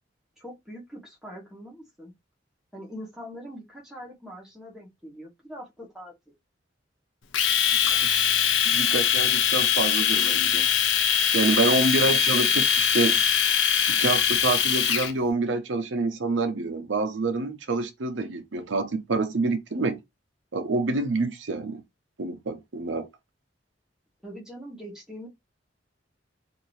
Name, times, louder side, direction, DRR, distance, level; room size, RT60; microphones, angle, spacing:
voice 1, 0.4-2.1 2.7-6.1 12.0-12.5 24.2-25.3, equal, 5° right, 1.0 m, -42 dB
Domestic sounds home sounds, 7.3-15.1, left 8 dB, 80° left, 0.5 m, -22 dB
voice 2, 8.6-10.7 11.3-12.6 12.9-13.2 13.9-20.0 20.5-21.8 22.2-23.1, right 3 dB, 85° right, 0.6 m, -27 dB
2.7 x 2.6 x 3.1 m
head